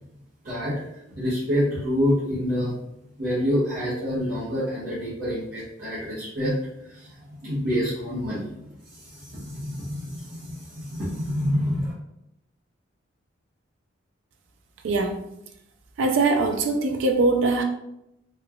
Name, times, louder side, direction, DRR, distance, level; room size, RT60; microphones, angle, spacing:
voice 1, 0.4-0.7 1.1-2.7 3.2-6.5 6.8-7.1 7.4-8.5 8.9-11.9, equal, 50° right, -11 dB, 0.8 m, -27 dB
voice 2, 14.8-15.2 16.0-17.6, right 3 dB, 75° right, 4 dB, 0.3 m, -22 dB
3.0 x 2.3 x 2.3 m, 0.83 s
head